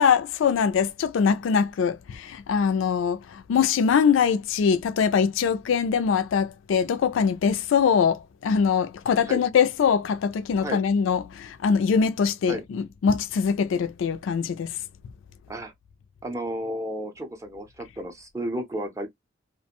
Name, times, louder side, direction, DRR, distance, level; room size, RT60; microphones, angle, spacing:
voice 1, 0.0-14.8, left 6 dB, 70° left, 0.3 m, -23 dB
voice 2, 16.2-19.1, equal, 15° right, 0.5 m, -32 dB
2.4 x 2.1 x 2.8 m
head